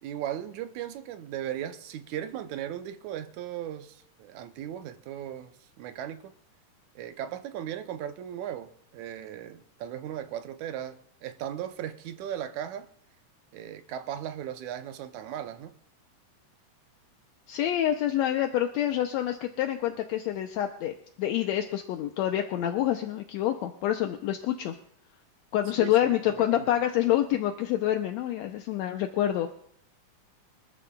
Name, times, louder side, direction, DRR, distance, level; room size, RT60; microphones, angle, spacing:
voice 1, 0.0-6.3 7.0-12.9 13.5-15.7 25.8-26.7, right 10 dB, 75° right, 2.0 m, -37 dB
voice 2, 17.5-24.8 25.5-29.5, left 12 dB, 75° left, 1.7 m, -27 dB
24.5 x 13.5 x 2.3 m
omnidirectional pair, 3.7 m